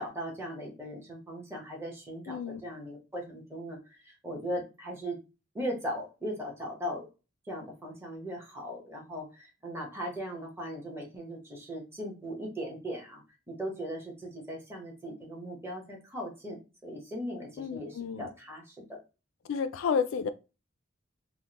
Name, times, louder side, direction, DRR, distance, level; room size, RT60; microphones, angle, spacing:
voice 1, 0.0-5.2 5.5-7.1 7.4-13.2 13.5-19.0, equal, 15° right, 0.9 m, -38 dB
voice 2, 2.3-2.6 17.6-18.3 19.5-20.3, left 6 dB, 70° left, 0.3 m, -31 dB
3.4 x 2.1 x 2.9 m
head